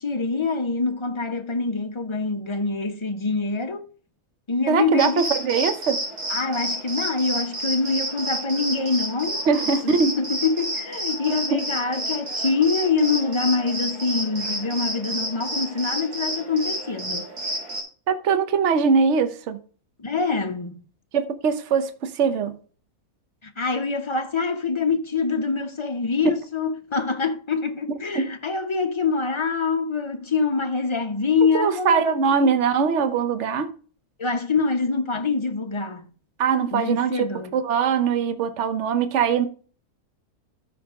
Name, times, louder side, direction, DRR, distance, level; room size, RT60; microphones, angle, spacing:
voice 1, 0.0-3.8 4.5-5.3 6.3-9.4 9.8-17.3 20.0-20.8 23.4-32.5 34.2-36.0 36.7-37.5, left 4 dB, 25° left, 0.6 m, -25 dB
voice 2, 4.7-6.0 9.5-10.1 11.5-11.6 18.1-19.6 21.1-22.6 28.1-28.3 31.5-33.7 36.4-37.3 37.5-39.5, right 6 dB, 55° right, 1.1 m, -22 dB
sound 1, 5.0-17.8, right 1 dB, 90° right, 3.8 m, -30 dB
13.5 x 4.5 x 3.6 m
omnidirectional pair, 1.5 m